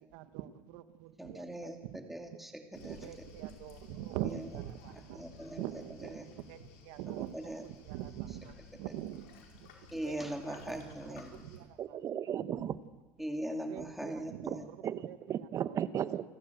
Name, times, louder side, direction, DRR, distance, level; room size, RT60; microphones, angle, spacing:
voice 1, 0.1-1.4 1.8-2.0 2.8-5.2 5.6-7.3 7.9-9.2 9.6-9.7 10.0-10.2 10.4-10.8 11.4-11.6 13.7-14.6, right 13 dB, 75° right, 11 dB, 1.5 m, -42 dB
voice 2, 1.2-3.3 4.2-4.6 5.1-6.3 7.2-7.6 8.3-8.4 8.9-9.0 9.9-11.4 13.2-14.7, right 1 dB, ahead, 3 dB, 2.8 m, -41 dB
Waves surf, 2.7-11.6, left 6 dB, 80° left, 5.0 m, -56 dB
voice 3, 11.8-12.8 14.5-14.6 14.8-16.3, right 9 dB, 45° right, 14 dB, 1.1 m, -35 dB
29.0 x 12.5 x 8.0 m, 1.2 s
supercardioid pair, 100°, 8 cm